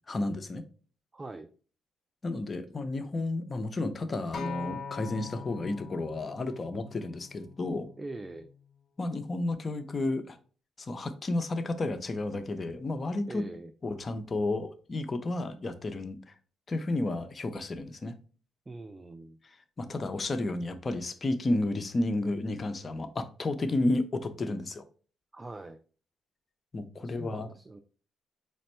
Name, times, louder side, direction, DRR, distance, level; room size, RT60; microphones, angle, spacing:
voice 1, 0.1-0.6 2.2-7.9 9.0-10.4 10.8-13.4 13.8-16.3 16.7-18.1 19.4-24.9 26.7-27.5, left 2 dB, 35° left, 0.5 m, -32 dB
voice 2, 1.1-1.5 8.0-8.5 13.3-13.7 18.7-19.4 25.3-25.8 27.0-27.8, right 2 dB, 20° right, 0.3 m, -43 dB
Acoustic guitar, 4.3-8.6 9.4-9.5, left 5 dB, 50° left, 0.9 m, -43 dB
5.1 x 2.1 x 4.2 m
cardioid pair, 90°, 0 cm